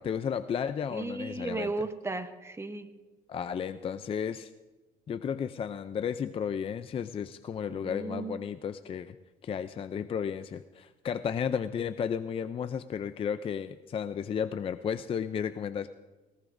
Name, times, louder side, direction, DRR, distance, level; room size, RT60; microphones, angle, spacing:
voice 1, 0.0-1.7 3.3-4.5 5.1-9.2 9.4-15.9, left 7 dB, 35° left, 11 dB, 0.4 m, -33 dB
voice 2, 0.9-2.9 7.7-8.4, right 3 dB, 15° right, 9 dB, 0.9 m, -35 dB
19.0 x 19.0 x 2.6 m, 1.2 s
cardioid pair, 110°, 17 cm